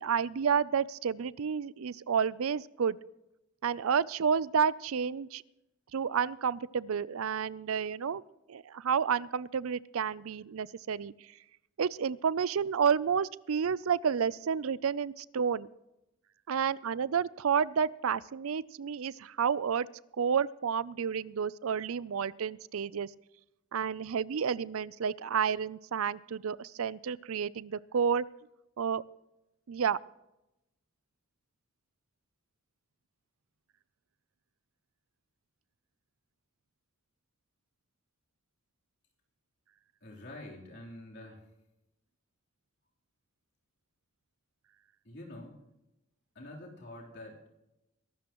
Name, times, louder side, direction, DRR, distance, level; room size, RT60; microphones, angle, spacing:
voice 1, 0.0-3.0 3.6-5.4 5.9-8.2 8.5-11.1 11.8-15.7 16.5-19.9 20.2-23.1 23.7-28.3 28.8-29.0 29.7-30.0, right 7 dB, 85° right, 20 dB, 0.5 m, -30 dB
voice 2, 40.0-41.4 45.0-45.6 46.4-47.5, left 1 dB, 55° left, -2 dB, 3.6 m, -46 dB
22.5 x 12.5 x 3.0 m, 0.91 s
head